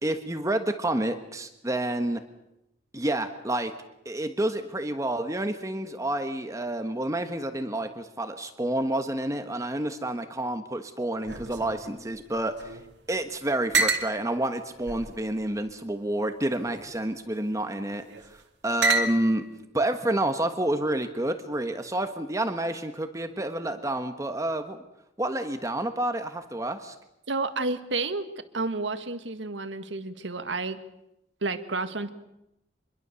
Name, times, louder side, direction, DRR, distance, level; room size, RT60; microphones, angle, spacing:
voice 1, 0.0-2.2 2.9-3.7 4.0-12.8 13.1-18.0 18.6-19.4 19.7-24.8 25.2-26.9, right 1 dB, 20° right, 7 dB, 1.3 m, -29 dB
sound 1, 11.2-12.9 13.2-13.3 13.7-14.1 14.9-15.7 16.5-16.9 17.9-18.3 18.8-19.5, right 3 dB, 65° right, 2.4 m, -29 dB
voice 2, 27.3-28.3 28.5-30.8 31.4-32.1, right 3 dB, 85° right, 9 dB, 1.8 m, -30 dB
26.0 x 22.0 x 7.0 m, 0.87 s
head